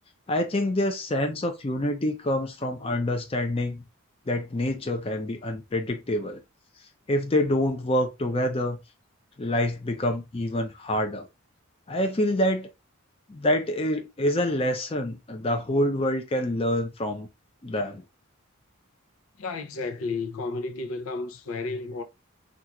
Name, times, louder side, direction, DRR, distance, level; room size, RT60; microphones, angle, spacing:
voice 1, 0.3-3.8 4.3-6.4 7.1-8.8 9.4-11.3 11.9-12.7 13.3-17.3 17.6-18.0, left 1 dB, 25° left, 0.5 m, -26 dB
voice 2, 19.4-22.0, left 3 dB, 80° left, 0.6 m, -32 dB
3.8 x 2.4 x 2.9 m
head